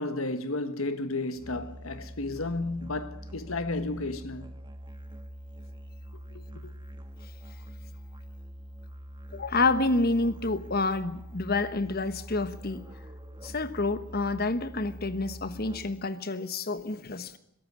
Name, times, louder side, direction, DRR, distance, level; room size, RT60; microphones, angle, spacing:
voice 1, 0.0-4.5 6.3-6.7, left 2 dB, 70° left, 1.5 m, -33 dB
Musical instrument, 1.3-16.1, equal, 20° right, 1.6 m, -44 dB
voice 2, 9.3-12.9 13.4-17.4, left 3 dB, 45° left, 1.2 m, -28 dB
22.0 x 13.0 x 9.6 m
head